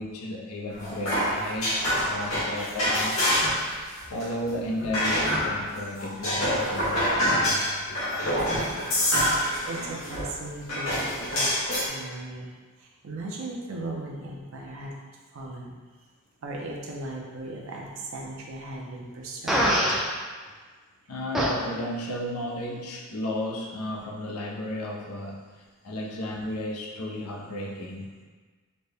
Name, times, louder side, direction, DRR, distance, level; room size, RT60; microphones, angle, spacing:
voice 1, 0.0-3.4 4.1-8.7 21.1-28.2, left 1 dB, 85° left, -1 dB, 0.6 m, -34 dB
sound 1, 0.7-3.7 4.0-5.7 6.0-10.4 10.7-11.9, equal, 70° left, 1.3 m, -26 dB
voice 2, 9.3-12.5 12.8-14.9 15.3-15.7 16.4-19.7, right 2 dB, 60° right, -2 dB, 0.6 m, -37 dB
Fart, 19.5-20.0 21.3-21.5, equal, ahead, 0.4 m, -22 dB
4.0 x 2.1 x 3.4 m, 1.4 s
head